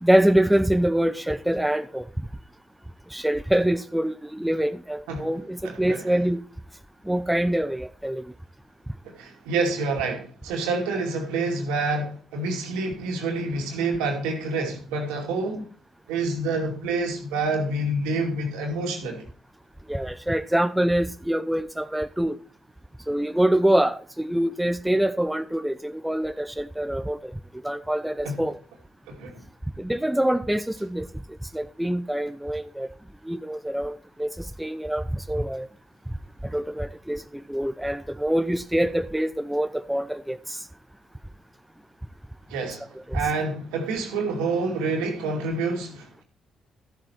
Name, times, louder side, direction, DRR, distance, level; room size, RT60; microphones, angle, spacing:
voice 1, 0.0-2.1 3.1-6.4 7.1-8.2 19.9-22.4 23.1-27.3 27.6-28.6 29.8-31.1 31.5-32.9 33.3-35.7 36.5-40.6 43.1-43.2, right 1 dB, 5° right, 0.6 m, -25 dB
voice 2, 5.6-6.2 9.1-15.7 16.1-19.2 28.2-28.4 29.1-29.4 42.5-42.9 43.1-46.2, right 3 dB, 80° right, 2.4 m, -28 dB
13.0 x 7.4 x 4.5 m
hypercardioid pair, 45°, 0 cm